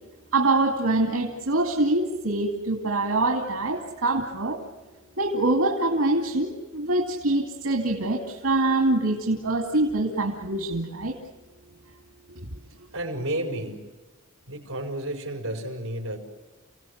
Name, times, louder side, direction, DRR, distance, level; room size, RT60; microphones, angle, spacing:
voice 1, 0.3-4.6 5.2-11.2 12.4-12.5, right 2 dB, 90° right, 2 dB, 2.5 m, -24 dB
voice 2, 12.9-13.8 14.5-16.2, right 1 dB, 65° right, 0 dB, 5.0 m, -31 dB
29.5 x 17.5 x 8.0 m, 1.2 s
head